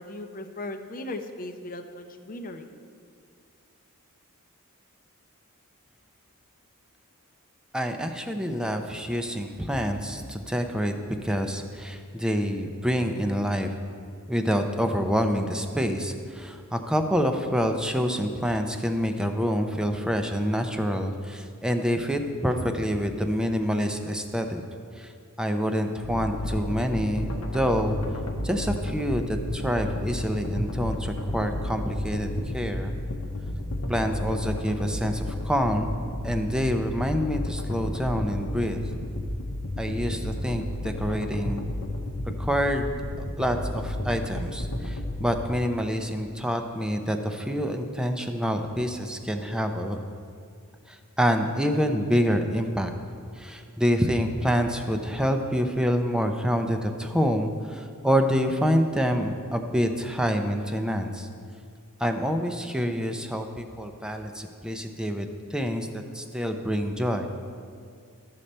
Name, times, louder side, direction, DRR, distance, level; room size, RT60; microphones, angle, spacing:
voice 1, 0.0-2.7, left 1 dB, 40° left, 7 dB, 0.6 m, -37 dB
voice 2, 7.7-10.9 11.2-13.7 14.3-24.6 25.0-25.1 25.4-28.0 28.4-32.3 32.5-32.9 33.9-35.9 36.2-38.8 39.8-41.8 42.4-43.0 43.4-50.0 50.9-52.9 53.4-61.3 62.0-67.3, equal, 5° right, 5 dB, 0.5 m, -27 dB
sound 1, 26.0-45.5, left 1 dB, 75° left, 0.9 m, -32 dB
12.5 x 6.6 x 4.3 m, 2.2 s
head